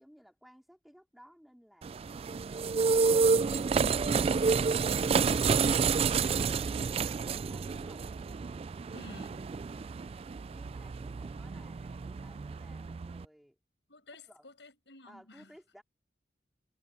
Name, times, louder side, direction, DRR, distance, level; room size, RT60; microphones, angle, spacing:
voice 1, 0.0-1.9 9.7-10.1 10.5-13.5 14.3-14.5 15.0-15.8, equal, ahead, 3.3 m, -59 dB
sound 1, 1.8-13.2, right 5 dB, 35° right, 0.3 m, -29 dB
voice 2, 8.9-9.5 13.9-15.5, left 2 dB, 80° left, 7.1 m, -52 dB
head